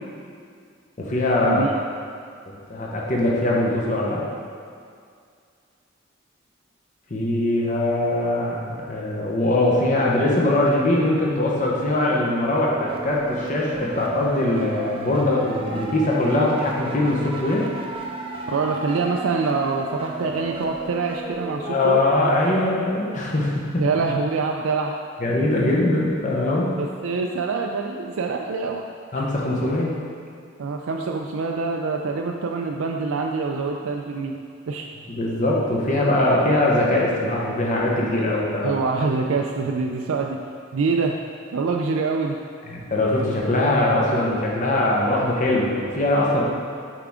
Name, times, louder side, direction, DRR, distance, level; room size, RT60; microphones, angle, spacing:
voice 1, 1.0-1.6 2.5-4.2 7.1-17.7 21.6-23.6 25.2-26.7 29.1-30.0 35.1-38.8 42.7-46.4, left 1 dB, 40° left, -3 dB, 1.0 m, -22 dB
sound 1, 12.3-22.3, right 2 dB, 25° right, 0.5 m, -34 dB
voice 2, 18.5-22.0 23.8-25.0 26.8-28.8 29.2-29.3 30.6-34.4 34.7-34.9 38.6-40.4 40.7-41.2 41.5-42.4, right 4 dB, 85° right, 1 dB, 0.4 m, -25 dB
8.3 x 4.6 x 3.7 m, 2.2 s
head